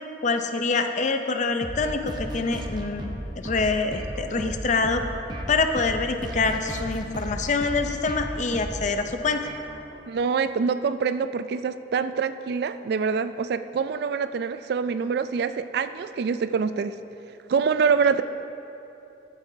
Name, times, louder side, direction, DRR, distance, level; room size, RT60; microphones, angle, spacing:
voice 1, 0.2-5.1 5.5-9.5, left 4 dB, 45° left, 7 dB, 0.5 m, -25 dB
sound 1, 1.6-10.0, right 1 dB, 25° right, 0.7 m, -35 dB
voice 2, 10.1-17.0 17.5-18.2, right 5 dB, 65° right, 12 dB, 0.3 m, -25 dB
14.5 x 8.2 x 2.7 m, 2.8 s
head